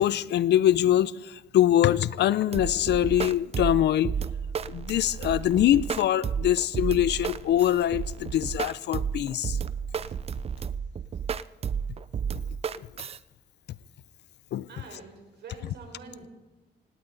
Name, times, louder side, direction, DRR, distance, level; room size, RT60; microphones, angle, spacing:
voice 1, 0.0-4.1 4.7-9.6 12.8-12.9 14.5-14.7, left 12 dB, 75° left, 0.6 m, -23 dB
sound 1, 2.5-13.2, right 7 dB, 35° right, 0.4 m, -32 dB
voice 2, 14.7-16.3, right 4 dB, 75° right, 4.2 m, -46 dB
18.5 x 17.5 x 4.0 m
cardioid pair, 135°, 18 cm